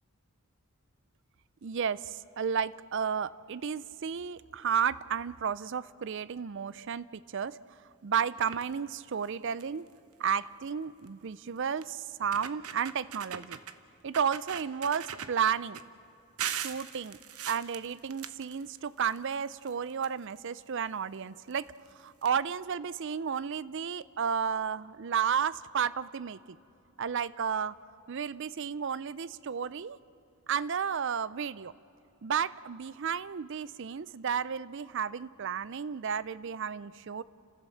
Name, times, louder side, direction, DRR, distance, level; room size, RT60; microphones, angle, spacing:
voice 1, 1.6-7.6 8.0-9.8 10.2-13.6 14.0-15.8 16.5-17.2 17.5-21.7 22.0-26.6 27.0-27.8 28.1-30.0 30.5-31.7 32.2-37.2, right 7 dB, 55° right, 18 dB, 0.5 m, -32 dB
sound 1, 8.4-8.7 9.2-9.3 9.6-9.9 11.1-11.2 11.8-11.9 12.2-13.8 14.1-15.8 16.4-19.2 19.5-20.6 21.5-21.6 21.9-22.0 22.2-22.3, right 9 dB, 80° right, 0.9 m, -40 dB
30.0 x 15.0 x 7.1 m, 2.8 s
head